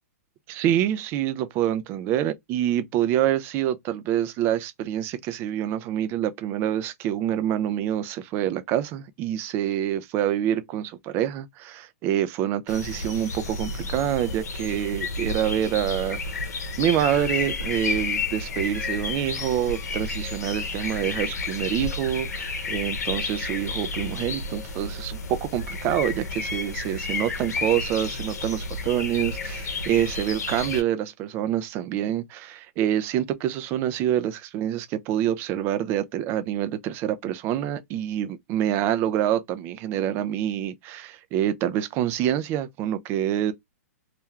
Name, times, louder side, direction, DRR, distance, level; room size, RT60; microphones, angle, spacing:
voice 1, 0.5-16.5 16.8-43.5, right 11 dB, 25° right, 0.3 m, -26 dB
sound 1, 12.7-30.8, left 3 dB, 85° left, 0.8 m, -31 dB
2.4 x 2.2 x 2.9 m
hypercardioid pair, 145°, 9 cm